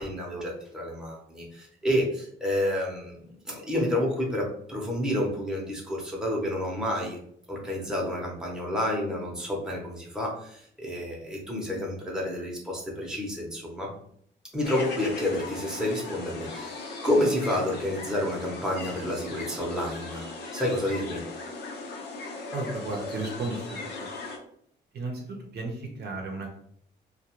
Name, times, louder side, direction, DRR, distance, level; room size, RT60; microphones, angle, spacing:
voice 1, 0.0-7.2 7.5-13.9 14.5-20.3 20.5-21.2, left 1 dB, 5° right, -3 dB, 0.8 m, -29 dB
sound 1, 14.6-24.4, left 3 dB, 60° left, 0.6 m, -38 dB
voice 2, 22.5-24.1 24.9-26.6, right 3 dB, 60° right, 1 dB, 0.7 m, -34 dB
2.3 x 2.3 x 2.9 m, 0.65 s
cardioid pair, 100°, 19 cm